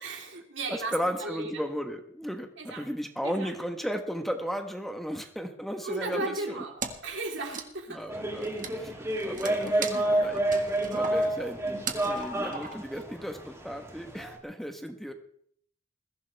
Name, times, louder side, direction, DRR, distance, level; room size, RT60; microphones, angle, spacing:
voice 1, 0.0-1.6 2.6-2.9 3.2-3.5 5.8-8.2 8.7-8.8 9.2-9.3 9.7-9.9, right 2 dB, 65° right, 1 dB, 3.6 m, -36 dB
voice 2, 0.7-6.6 7.9-8.5 8.8-9.0 9.2-15.1, equal, ahead, 5 dB, 1.2 m, -35 dB
Wood, 6.8-7.2 7.4-13.0, right 5 dB, 40° right, 1.7 m, -39 dB
sound 1, 8.1-14.4, right 1 dB, 15° right, 2.8 m, -29 dB
21.5 x 16.0 x 3.4 m, 0.63 s
head